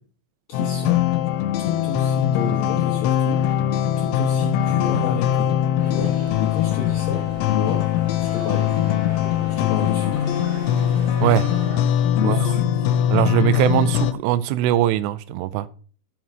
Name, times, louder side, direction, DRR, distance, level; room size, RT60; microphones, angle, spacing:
sound 1, 0.5-14.1, left 10 dB, 90° left, 3.1 m, -21 dB
voice 1, 0.5-1.0 1.6-3.5 4.0-5.5 5.9-7.9 8.2-9.2 9.5-10.3 12.2-12.9, left 5 dB, 70° left, 2.3 m, -30 dB
sound 2, 5.8-11.8, right 3 dB, 50° right, 1.4 m, -38 dB
voice 2, 13.1-15.7, right 13 dB, 85° right, 2.8 m, -21 dB
13.5 x 4.7 x 5.4 m
omnidirectional pair, 5.2 m